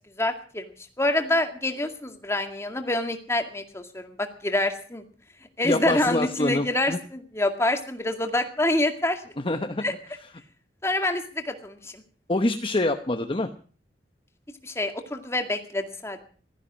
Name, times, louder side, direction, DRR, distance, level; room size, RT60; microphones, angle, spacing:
voice 1, 0.2-0.6 1.0-5.0 5.6-9.2 9.8-9.9 10.8-12.0 14.6-16.2, left 1 dB, 15° left, 5 dB, 2.1 m, -26 dB
voice 2, 5.6-7.0 9.4-9.9 10.2-10.3 12.3-13.5, left 2 dB, 30° left, 6 dB, 1.0 m, -25 dB
16.0 x 13.5 x 6.3 m, 0.42 s
head